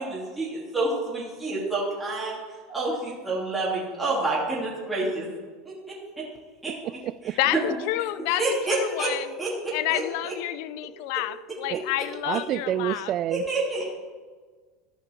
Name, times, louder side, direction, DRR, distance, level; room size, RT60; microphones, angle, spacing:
voice 1, 0.0-2.4 2.7-5.3 5.6-5.7 6.6-6.7 7.2-7.6 8.4-9.1 9.4-10.3 13.3-13.8, right 2 dB, 10° right, 2.8 m, -28 dB
voice 2, 6.8-7.4 11.7-11.9 12.2-13.4, right 12 dB, 45° right, 0.3 m, -28 dB
voice 3, 7.4-9.3 9.7-13.1, left 15 dB, 65° left, 0.4 m, -29 dB
14.0 x 5.2 x 4.5 m
supercardioid pair, 125°, 0 cm